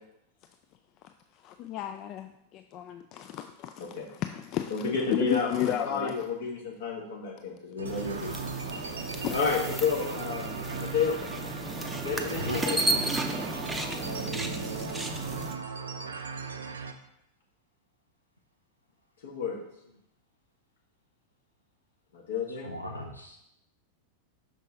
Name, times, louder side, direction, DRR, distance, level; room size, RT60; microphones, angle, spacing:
voice 1, 1.3-6.1 8.7-8.8 9.2-9.4 10.7-10.9 11.8-11.9, left 11 dB, 40° left, 8 dB, 0.3 m, -33 dB
voice 2, 4.7-8.3 9.3-11.2 12.0-13.1 19.2-19.6 22.1-22.7, left 5 dB, 60° left, 0 dB, 1.5 m, -31 dB
sound 1, 7.8-16.9, right 5 dB, 70° right, 0.5 m, -37 dB
sound 2, 7.9-15.6, right 1 dB, 5° right, 0.6 m, -34 dB
voice 3, 22.6-23.4, left 1 dB, 90° left, 1 dB, 0.6 m, -36 dB
6.1 x 5.4 x 3.8 m, 0.80 s
figure-of-eight pair, 90°, 0 cm